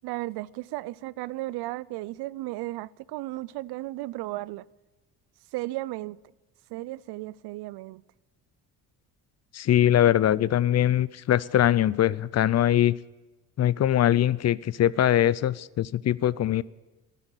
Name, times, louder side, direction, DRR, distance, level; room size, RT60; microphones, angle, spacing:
voice 1, 0.0-4.6 5.5-6.2 6.7-8.0, right 18 dB, 80° right, 0.5 m, -35 dB
voice 2, 9.5-12.9 13.6-16.6, left 11 dB, 45° left, 0.5 m, -22 dB
11.5 x 11.0 x 9.0 m
supercardioid pair, 80°, 39 cm